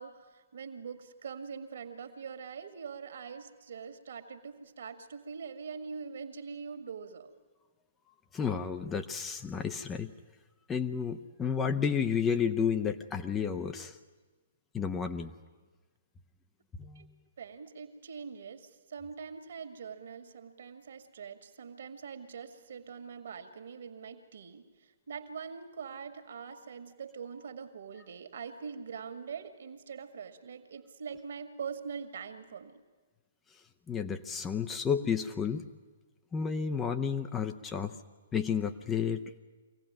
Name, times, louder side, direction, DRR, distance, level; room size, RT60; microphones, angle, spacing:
voice 1, 0.0-7.3 17.0-17.1 17.4-32.8, right 6 dB, 55° right, 8 dB, 1.9 m, -43 dB
voice 2, 8.3-10.1 10.7-14.0 14.7-15.3 16.8-17.1 33.9-35.7 36.3-37.9 38.3-39.4, left 6 dB, 15° left, 7 dB, 0.8 m, -31 dB
24.0 x 17.0 x 9.0 m, 1.3 s
figure-of-eight pair, 120°, 0 cm